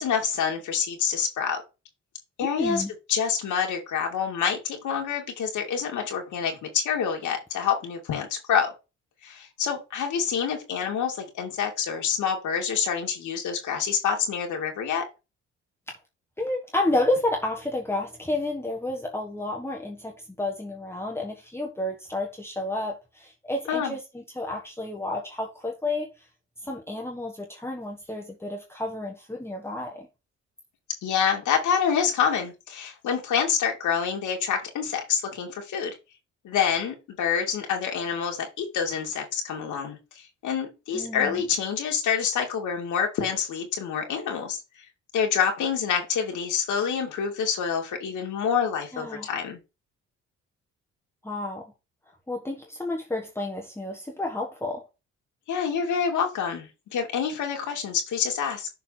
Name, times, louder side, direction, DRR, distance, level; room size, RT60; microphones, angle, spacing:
voice 1, 0.0-1.6 2.4-2.8 3.1-8.7 9.2-15.1 23.7-24.0 31.0-35.9 36.4-44.6 45.1-49.6 55.5-58.7, left 7 dB, 80° left, 2 dB, 2.5 m, -27 dB
voice 2, 2.4-2.9 15.9-16.0 16.4-26.1 26.6-30.1 40.9-41.4 48.9-49.3 51.2-51.6 52.3-54.8, left 2 dB, 10° left, -1 dB, 1.5 m, -30 dB
6.9 x 4.1 x 4.1 m, 0.27 s
cardioid pair, 90°, 30 cm